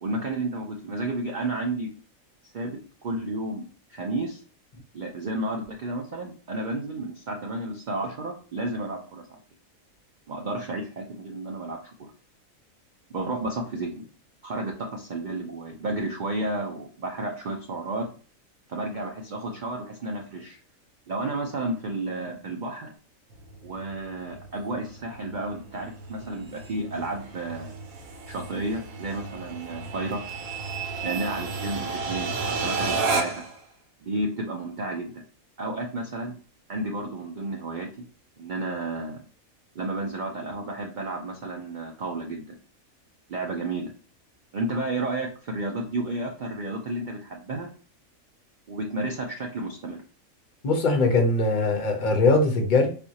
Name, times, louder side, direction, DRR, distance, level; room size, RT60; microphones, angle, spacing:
voice 1, 0.0-1.9 2.4-2.7 3.0-4.4 4.9-9.4 10.3-12.1 13.1-14.0 14.4-18.1 18.7-20.6 21.1-22.9 23.6-27.7 28.3-30.2 31.0-33.4 34.0-35.1 35.6-36.3 36.7-37.9 38.4-39.2 39.8-42.6 43.3-43.9 44.5-47.7 48.7-50.0, right 2 dB, 60° right, 0.5 m, -32 dB
sound 1, 23.3-33.6, right 4 dB, 80° right, 1.1 m, -33 dB
voice 2, 50.6-52.9, left 3 dB, 50° left, 0.6 m, -21 dB
3.6 x 2.5 x 2.7 m
omnidirectional pair, 1.4 m